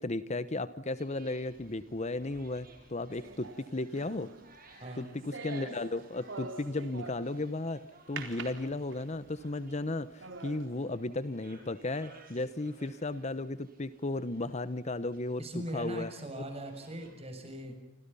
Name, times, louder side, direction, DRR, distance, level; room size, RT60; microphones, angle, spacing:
voice 1, 0.0-4.3 4.7-7.8 8.1-15.5 15.7-16.1 17.7-17.8, left 2 dB, 35° left, 14 dB, 1.0 m, -35 dB
sound 1, 0.9-17.1, right 2 dB, 50° right, 6.8 m, -60 dB
sound 2, 3.1-7.5 8.2-9.3 9.8-9.9 10.2-10.7, right 3 dB, 80° right, 4.1 m, -45 dB
voice 2, 4.8-5.2 15.4-17.8, right 1 dB, 35° right, 6 dB, 7.0 m, -40 dB
29.5 x 26.5 x 5.6 m, 0.89 s
head